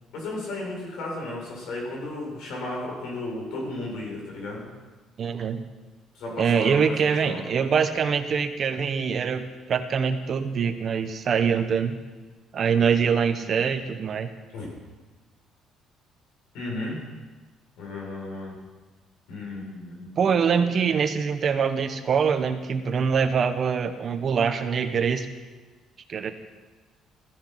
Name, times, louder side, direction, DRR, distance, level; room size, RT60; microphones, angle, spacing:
voice 1, 0.1-4.7 6.1-7.4 14.5-14.7 16.5-17.0 17.8-18.6 19.3-20.1, left 2 dB, 80° left, -2 dB, 7.3 m, -34 dB
voice 2, 5.2-5.7 6.4-12.0 12.5-14.3 20.2-25.3 26.1-26.3, right 6 dB, 45° right, 8 dB, 1.3 m, -24 dB
16.5 x 14.0 x 6.0 m, 1.3 s
cardioid pair, 125°, 0 cm